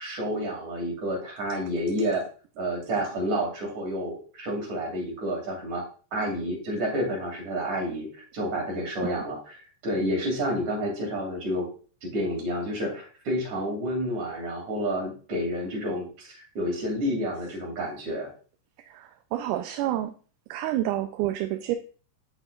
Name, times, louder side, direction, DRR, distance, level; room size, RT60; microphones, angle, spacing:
voice 1, 0.0-2.2 2.6-5.8 6.1-11.7 12.0-18.3, equal, 65° right, 0 dB, 3.8 m, -30 dB
voice 2, 18.8-20.1 20.5-21.8, right 14 dB, 85° right, 6 dB, 2.1 m, -29 dB
8.1 x 8.0 x 2.4 m, 0.39 s
omnidirectional pair, 3.6 m